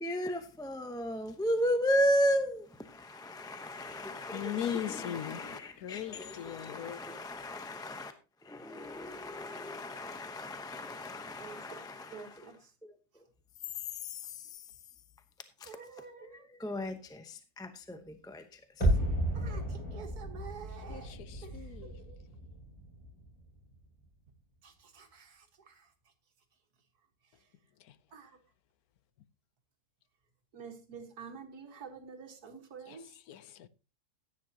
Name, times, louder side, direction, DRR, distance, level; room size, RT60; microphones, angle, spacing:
voice 1, 0.0-8.1 8.5-12.3 14.1-14.2 15.6-15.7 16.3-18.4, equal, 5° left, 0.6 m, -34 dB
voice 2, 4.3-7.0 20.9-22.0 32.9-33.0 33.3-33.7, left 10 dB, 80° left, 1.2 m, -39 dB
voice 3, 11.4-11.8 12.1-12.7 15.6-16.5 19.3-22.2 24.6-25.9 28.1-28.4 30.5-33.1, right 5 dB, 90° right, 2.1 m, -49 dB
sound 1, 18.8-23.7 24.0-24.1, equal, 25° left, 6.3 m, -33 dB
15.0 x 9.4 x 2.9 m
omnidirectional pair, 1.6 m